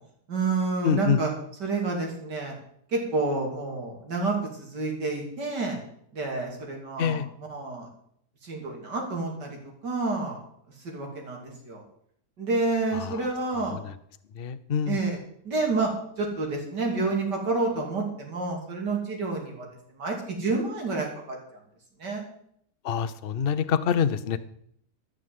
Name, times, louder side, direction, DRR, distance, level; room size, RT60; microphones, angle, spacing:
voice 1, 0.3-1.3 1.6-2.6 2.9-5.8 6.1-7.9 8.4-10.4 10.8-11.8 12.4-13.8 14.9-15.2 15.4-21.6 22.0-22.3, right 3 dB, 85° right, 0 dB, 3.5 m, -29 dB
voice 2, 0.8-1.2 7.0-7.3 14.4-15.0 22.8-24.4, left 7 dB, 50° left, 12 dB, 0.7 m, -25 dB
13.0 x 6.6 x 7.8 m, 0.69 s
omnidirectional pair, 1.8 m